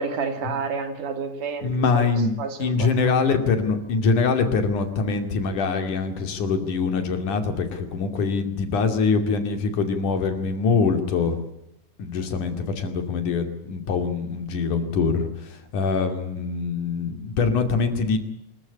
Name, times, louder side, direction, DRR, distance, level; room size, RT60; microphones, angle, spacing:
voice 1, 0.0-2.0 2.4-2.9, right 5 dB, 90° right, 7 dB, 4.1 m, -29 dB
voice 2, 1.6-11.4 12.0-18.2, left 4 dB, 80° left, 7 dB, 4.0 m, -24 dB
25.5 x 14.5 x 9.9 m, 0.82 s
omnidirectional pair, 3.5 m